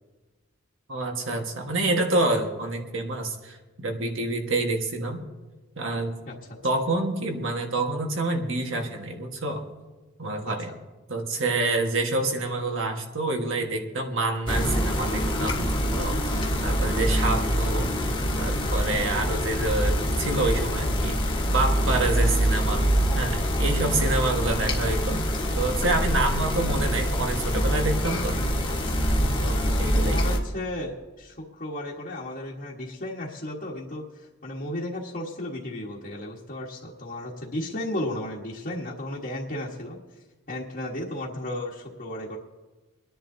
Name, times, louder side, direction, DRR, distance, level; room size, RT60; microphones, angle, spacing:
voice 1, 0.9-5.2 5.8-6.2 6.6-9.7 10.2-10.7 11.1-17.9 18.4-22.9 23.1-25.2 25.5-28.4 29.4-30.2, right 2 dB, 65° right, 3 dB, 1.5 m, -27 dB
sound 1, 14.5-30.4, equal, 20° left, 1.4 m, -25 dB
voice 2, 30.0-40.0 40.5-42.4, left 1 dB, 45° left, -5 dB, 1.4 m, -34 dB
30.0 x 10.5 x 2.7 m, 1.2 s
head